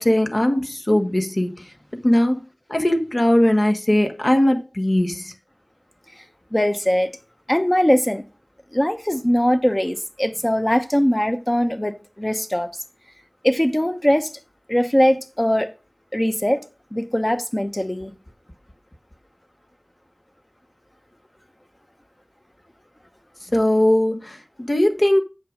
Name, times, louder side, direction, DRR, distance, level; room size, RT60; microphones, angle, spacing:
voice 1, 0.0-1.5 2.0-2.4 2.7-5.3 23.5-25.2, left 1 dB, 50° left, 1.3 m, -19 dB
voice 2, 6.5-7.2 7.5-8.2 8.7-12.7 13.4-14.3 14.7-15.7 16.1-18.1, equal, 20° left, 1.0 m, -21 dB
7.6 x 5.6 x 5.1 m
wide cardioid pair, 45°, 0 cm